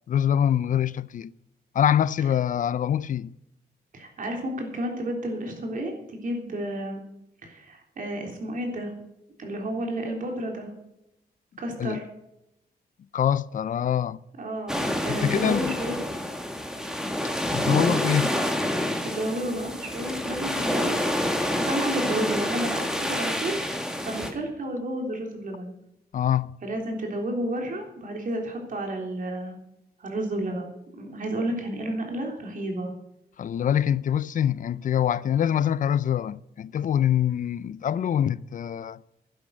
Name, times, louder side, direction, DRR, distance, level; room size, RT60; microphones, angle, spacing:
voice 1, 0.1-1.3 1.7-3.3 11.8-12.0 13.1-14.2 15.1-15.8 17.5-18.3 26.1-26.5 33.4-39.0, left 9 dB, 50° left, 0.4 m, -24 dB
voice 2, 3.9-7.0 7.4-8.9 9.4-10.7 11.6-12.0 14.4-16.0 19.0-21.0 21.6-23.6 24.0-25.7 26.6-29.6 30.0-32.9, right 1 dB, 55° right, 3.5 m, -31 dB
sound 1, 14.7-24.3, left 1 dB, 5° right, 1.7 m, -28 dB
11.5 x 9.5 x 6.4 m
wide cardioid pair, 145°, 17 cm